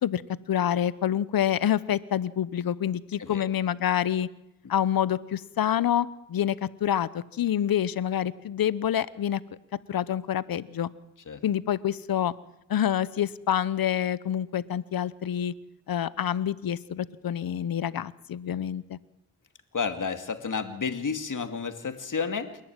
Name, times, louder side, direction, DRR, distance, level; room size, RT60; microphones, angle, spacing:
voice 1, 0.5-4.3 4.7-9.4 9.9-10.9 11.4-12.3 12.7-15.5 15.9-19.0, left 10 dB, 80° left, 18 dB, 0.9 m, -27 dB
voice 2, 19.7-22.6, left 5 dB, 60° left, 7 dB, 2.5 m, -31 dB
28.5 x 11.5 x 9.0 m, 0.83 s
cardioid pair, 45°, 35 cm